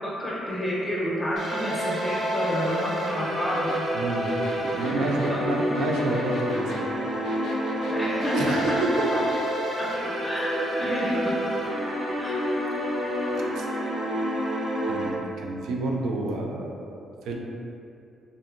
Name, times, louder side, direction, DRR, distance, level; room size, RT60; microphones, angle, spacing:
voice 1, 0.0-4.0 5.0-5.4 7.9-8.8 9.1-9.2 9.8-9.9 10.2-11.4 12.2-12.4, left 1 dB, 20° left, -6 dB, 0.6 m, -29 dB
sound 1, 1.4-15.1, equal, 60° right, 0.8 m, -28 dB
sound 2, 3.5-9.5, left 2 dB, 75° left, 0.4 m, -40 dB
voice 2, 3.9-4.3 4.5-6.9 8.3-9.1 13.4-13.7 14.9-17.4, right 2 dB, 80° right, 0 dB, 0.3 m, -29 dB
2.7 x 2.5 x 2.4 m, 2.6 s
cardioid pair, 90°, 0 cm